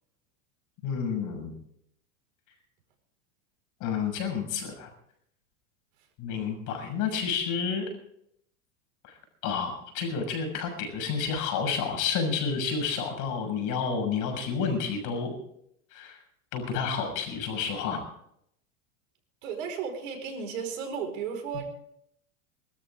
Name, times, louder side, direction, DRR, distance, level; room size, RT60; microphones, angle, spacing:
voice 1, 0.8-1.5 3.8-4.9 6.2-7.9 9.4-15.4 15.9-16.2 16.5-18.0, left 6 dB, 50° left, 5 dB, 6.5 m, -30 dB
voice 2, 19.4-21.7, right 6 dB, 75° right, 4 dB, 5.0 m, -34 dB
23.0 x 13.0 x 3.7 m, 0.72 s
supercardioid pair, 120°, 39 cm